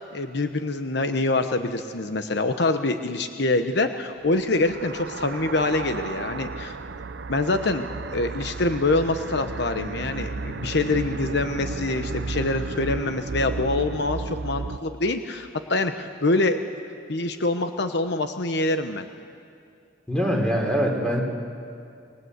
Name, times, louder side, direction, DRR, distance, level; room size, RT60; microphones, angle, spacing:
voice 1, 0.0-6.8 7.3-16.6 17.1-19.1, left 2 dB, 65° left, 7 dB, 1.0 m, -25 dB
sound 1, 4.2-14.8, right 3 dB, 70° right, 0.7 m, -33 dB
voice 2, 20.1-21.2, equal, 5° left, 1 dB, 3.8 m, -23 dB
27.0 x 22.0 x 8.1 m, 2.4 s
head